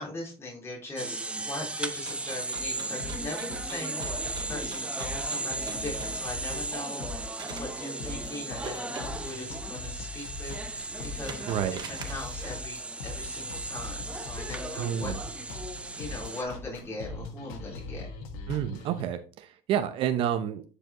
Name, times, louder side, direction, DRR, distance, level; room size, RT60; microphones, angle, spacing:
voice 1, 0.0-7.1 7.6-15.1 15.5-18.1, left 2 dB, 25° left, -3 dB, 3.8 m, -40 dB
sound 1, 1.0-16.4, right 2 dB, 10° right, 0.8 m, -36 dB
sound 2, 1.8-7.7 8.4-9.3 9.8-9.9 10.4-12.6, right 5 dB, 45° right, 1.8 m, -45 dB
sound 3, 2.6-19.0, left 4 dB, 85° left, 1.4 m, -41 dB
voice 2, 11.5-11.8 14.8-15.2 18.5-20.6, right 10 dB, 60° right, 8 dB, 0.7 m, -29 dB
10.0 x 4.9 x 3.0 m, 0.36 s
supercardioid pair, 105°, 10 cm